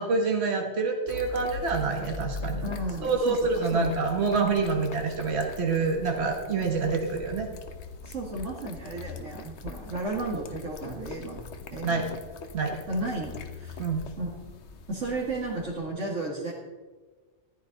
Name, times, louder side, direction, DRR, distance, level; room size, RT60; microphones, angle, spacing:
voice 1, 0.0-2.6 3.0-7.5 11.8-12.0 12.5-12.7 13.8-14.0, right 4 dB, 60° right, 1 dB, 1.7 m, -26 dB
sound 1, 1.1-15.9, left 4 dB, 70° left, 1.2 m, -42 dB
voice 2, 2.6-3.9 8.0-11.4 11.7-12.1 12.9-13.9 14.2-14.3 14.9-16.5, right 2 dB, 85° right, -4 dB, 2.2 m, -33 dB
14.5 x 11.0 x 4.0 m, 1.4 s
omnidirectional pair, 1.2 m